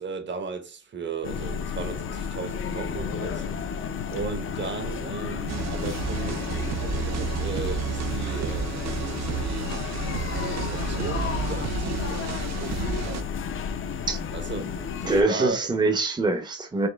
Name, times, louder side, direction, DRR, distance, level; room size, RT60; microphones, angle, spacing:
voice 1, 0.0-9.7 10.3-13.4 14.3-15.6, right 4 dB, 40° right, 0.9 m, -36 dB
sound 1, 1.2-15.2, left 6 dB, 45° left, 0.6 m, -32 dB
sound 2, 5.5-13.2, right 7 dB, 60° right, 0.6 m, -31 dB
voice 2, 15.1-16.9, right 3 dB, 15° right, 0.7 m, -24 dB
4.3 x 2.9 x 3.3 m
cardioid pair, 90°, 30 cm